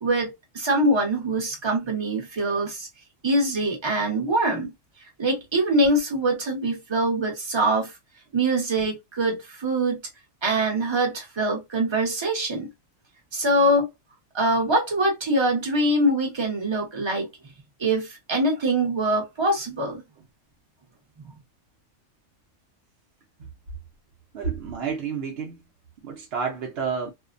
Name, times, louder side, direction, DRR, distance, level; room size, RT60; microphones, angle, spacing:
voice 1, 0.0-2.9 3.2-4.7 5.2-7.9 8.3-10.0 10.4-12.7 13.3-13.9 14.3-17.3 17.8-20.0 21.2-21.3, right 1 dB, 25° right, 0.7 m, -23 dB
voice 2, 24.3-25.6 26.0-27.1, right 6 dB, 60° right, 0.7 m, -30 dB
2.4 x 2.1 x 2.4 m
omnidirectional pair, 1.5 m